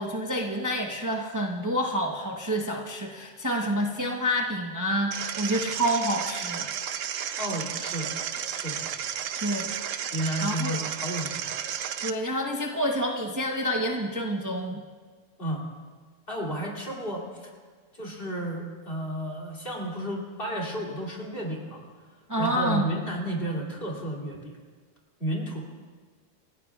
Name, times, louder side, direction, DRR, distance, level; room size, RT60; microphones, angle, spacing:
voice 1, 0.0-6.7 9.4-9.7 10.4-10.8 12.0-14.8 22.3-22.9, equal, 15° right, 0 dB, 0.9 m, -28 dB
sound 1, 5.1-12.1, right 9 dB, 90° right, 1.0 m, -33 dB
voice 2, 7.4-8.1 8.5-8.9 10.1-11.5 15.4-15.7 16.3-17.5 17.9-21.8 22.4-24.6 25.2-25.6, right 1 dB, 45° left, -3 dB, 2.9 m, -32 dB
28.0 x 16.0 x 2.4 m, 1.5 s
omnidirectional pair, 1.3 m